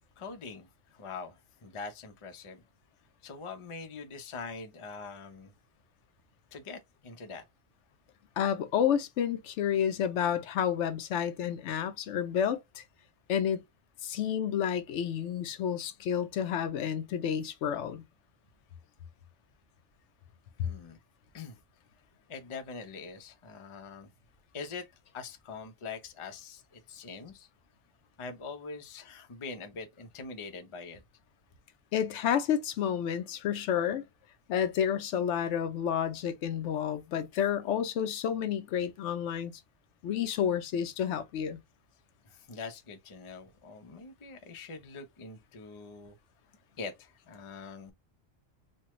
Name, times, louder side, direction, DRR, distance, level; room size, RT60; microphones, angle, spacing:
voice 1, 0.2-2.6 3.2-5.5 6.5-7.5 20.6-21.0 21.3-21.6 22.3-24.1 24.5-27.5 28.2-31.0 42.2-46.2 46.8-47.9, left 4 dB, 40° left, 0.5 m, -43 dB
voice 2, 8.4-12.8 13.3-13.6 14.0-18.0 31.9-34.0 34.5-39.5 40.0-41.6, left 9 dB, 80° left, 0.9 m, -30 dB
3.2 x 2.2 x 2.9 m
omnidirectional pair, 1.2 m